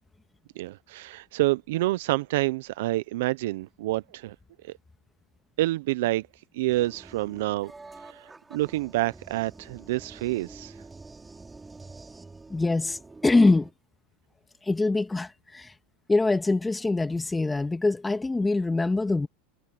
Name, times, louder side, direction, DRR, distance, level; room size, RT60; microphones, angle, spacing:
voice 1, 0.6-4.4 4.6-4.8 5.6-6.3 6.5-7.7 8.0-10.8, right 17 dB, 80° right, 0.5 m, -28 dB
sound 1, 6.7-13.7, right 3 dB, 15° right, 6.0 m, -47 dB
voice 2, 12.5-13.7 14.6-15.7 16.1-19.3, left 3 dB, 10° left, 1.7 m, -24 dB
supercardioid pair, 120°, 0 cm